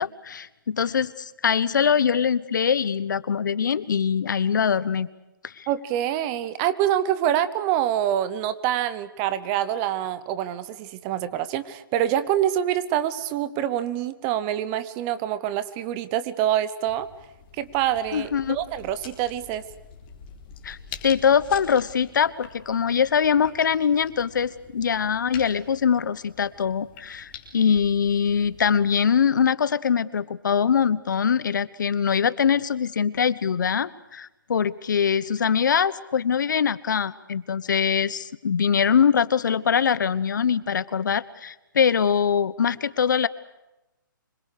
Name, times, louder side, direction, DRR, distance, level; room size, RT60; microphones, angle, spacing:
voice 1, 0.0-5.1 5.4-5.7 18.1-18.6 20.6-20.8 21.0-43.3, left 7 dB, 60° left, 17 dB, 1.2 m, -23 dB
voice 2, 5.7-17.1 17.6-19.6, right 11 dB, 20° right, 14 dB, 0.9 m, -26 dB
sound 1, 16.9-29.0, left 6 dB, 30° left, 4.2 m, -46 dB
26.0 x 23.5 x 6.8 m, 0.95 s
hypercardioid pair, 165°, 11 cm